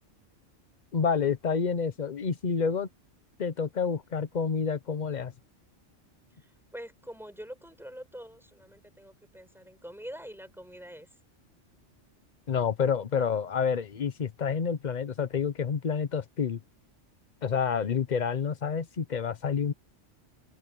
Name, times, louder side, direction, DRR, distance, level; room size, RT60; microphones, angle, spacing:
voice 1, 0.9-2.9 3.4-5.3 12.5-16.6 17.4-19.7, left 6 dB, 40° left, 0.8 m, -28 dB
voice 2, 6.4-11.1 13.2-13.3, equal, ahead, 7.6 m, -45 dB
open air
omnidirectional pair, 1.3 m